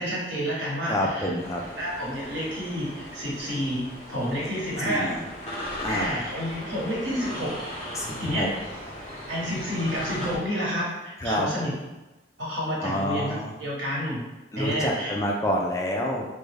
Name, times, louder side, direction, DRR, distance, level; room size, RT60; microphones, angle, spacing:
voice 1, 0.0-1.3 1.8-5.1 5.9-7.6 8.2-8.5 9.3-11.7 12.4-14.3 14.6-15.1, equal, 85° right, -5 dB, 1.1 m, -29 dB
voice 2, 0.9-1.6 4.8-5.2 5.8-6.2 7.9-8.5 11.2-11.5 12.8-13.5 14.5-16.3, equal, 15° left, -1 dB, 0.3 m, -28 dB
sound 1, 1.4-10.4, equal, 35° left, 0.8 m, -38 dB
3.2 x 2.2 x 3.3 m, 1.1 s
head